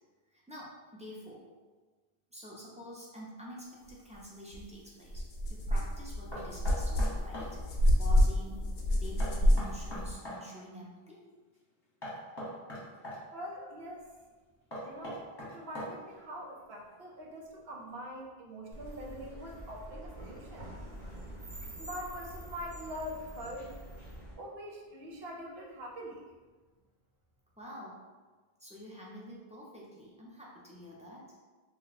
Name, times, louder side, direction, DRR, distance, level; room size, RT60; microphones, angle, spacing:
voice 1, 0.3-1.4 2.3-5.2 5.5-8.7 8.9-11.2 27.6-28.0 28.6-31.3, equal, 10° right, -5 dB, 0.4 m, -48 dB
sound 1, 4.5-4.6 5.1-10.1, equal, 65° left, 0.7 m, -28 dB
Knock, 6.3-7.5 9.2-10.4 12.0-13.2 14.7-16.1, equal, 25° left, 1.0 m, -41 dB
voice 2, 13.3-14.1 14.8-20.7 21.8-23.7 24.4-26.2, equal, 80° right, -1 dB, 0.9 m, -43 dB
sound 2, 18.7-24.3, right 1 dB, 45° right, 0.9 m, -46 dB
2.7 x 2.1 x 4.0 m, 1.3 s
omnidirectional pair, 1.0 m